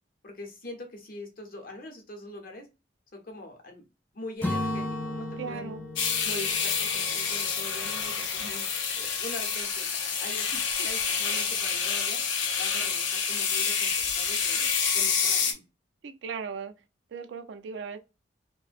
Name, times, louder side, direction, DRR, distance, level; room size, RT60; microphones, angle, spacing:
voice 1, 0.2-2.7 3.1-3.9 4.1-5.7 6.2-8.7 8.9-12.2 12.6-15.6, left 1 dB, 50° left, 0.7 m, -43 dB
Acoustic guitar / Strum, 4.4-8.4, left 1 dB, 10° left, 0.5 m, -35 dB
voice 2, 5.4-5.8 16.0-16.7 17.1-18.0, right 6 dB, 70° right, 0.3 m, -37 dB
sound 1, 6.0-15.5, left 6 dB, 90° left, 0.5 m, -28 dB
2.4 x 2.1 x 2.4 m
head